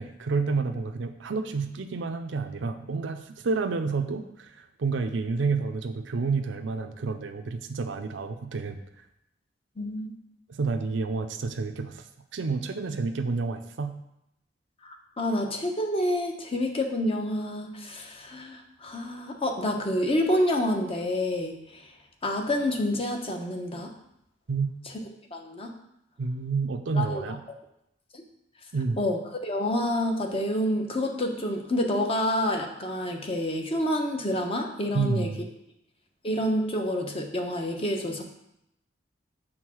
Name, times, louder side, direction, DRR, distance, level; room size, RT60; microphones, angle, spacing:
voice 1, 0.0-8.8 10.5-12.0 12.3-13.9 24.5-24.7 26.2-27.4 28.7-29.0 34.9-35.5, right 4 dB, 75° right, 7 dB, 0.5 m, -29 dB
voice 2, 9.8-10.1 14.8-21.8 22.2-23.9 25.3-25.7 26.9-27.2 28.1-28.2 29.0-35.3 36.2-38.2, left 1 dB, 30° left, 3 dB, 0.9 m, -28 dB
6.4 x 3.8 x 6.2 m, 0.81 s
head